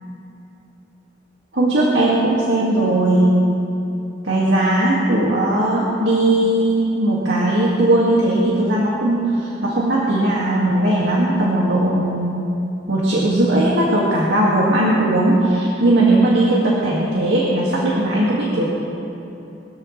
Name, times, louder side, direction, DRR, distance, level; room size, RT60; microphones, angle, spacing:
voice 1, 1.5-3.4 4.2-12.4 12.9-18.7, right 1 dB, 80° right, -5 dB, 2.1 m, -18 dB
22.5 x 14.0 x 3.3 m, 2.9 s
head